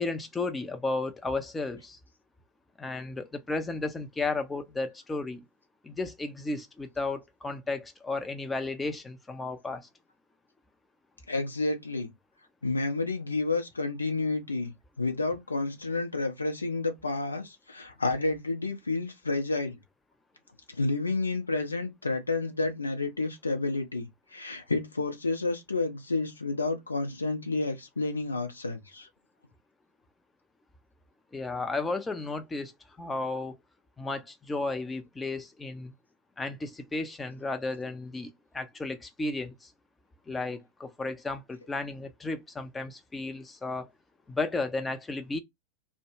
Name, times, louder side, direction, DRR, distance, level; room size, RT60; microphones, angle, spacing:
voice 1, 0.0-2.0 2.8-5.4 5.8-9.8 31.3-32.7 33.0-33.5 34.0-35.9 36.4-39.7 40.3-43.9 44.3-45.4, left 3 dB, 10° left, 0.5 m, -33 dB
voice 2, 11.3-12.1 12.6-14.7 15.0-19.8 20.7-29.1, left 3 dB, 80° left, 0.6 m, -30 dB
2.1 x 2.1 x 3.0 m
figure-of-eight pair, 90°, 0 cm